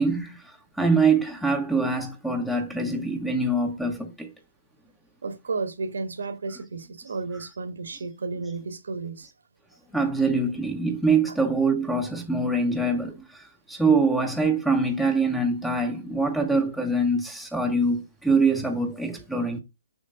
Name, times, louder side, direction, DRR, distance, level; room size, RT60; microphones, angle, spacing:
voice 1, 0.0-4.3 7.9-8.0 9.9-19.6, right 3 dB, ahead, 0.7 m, -24 dB
voice 2, 5.2-9.3, right 4 dB, 85° right, 1.4 m, -32 dB
6.4 x 3.2 x 5.4 m
hypercardioid pair, 155°, 0 cm